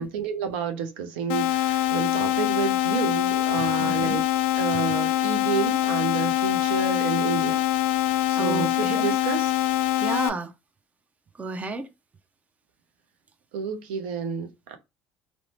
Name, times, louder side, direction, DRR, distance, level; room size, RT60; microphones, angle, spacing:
voice 1, 0.0-4.2 4.6-7.6 8.1-9.5 13.5-14.8, right 6 dB, 85° right, 0.5 m, -30 dB
sound 1, 1.3-10.3, left 14 dB, 75° left, 0.4 m, -24 dB
voice 2, 3.8-4.2 8.3-9.2 10.0-10.5 11.4-11.9, right 3 dB, 25° right, 0.5 m, -32 dB
2.6 x 2.1 x 2.9 m
hypercardioid pair, 75°, 5 cm